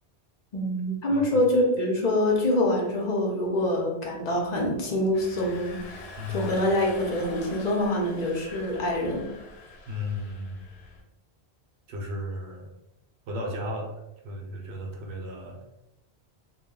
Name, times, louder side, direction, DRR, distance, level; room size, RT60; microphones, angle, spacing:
voice 1, 0.5-6.0 6.3-9.3, left 1 dB, 50° left, -1 dB, 0.6 m, -25 dB
voice 2, 1.1-1.4 6.2-6.5 9.9-10.7 11.9-12.7 13.3-13.9 14.2-15.6, left 1 dB, 85° right, 1 dB, 0.9 m, -34 dB
Engine, 5.1-11.0, left 2 dB, 85° left, 1.0 m, -44 dB
2.2 x 2.1 x 3.6 m, 0.93 s
omnidirectional pair, 1.1 m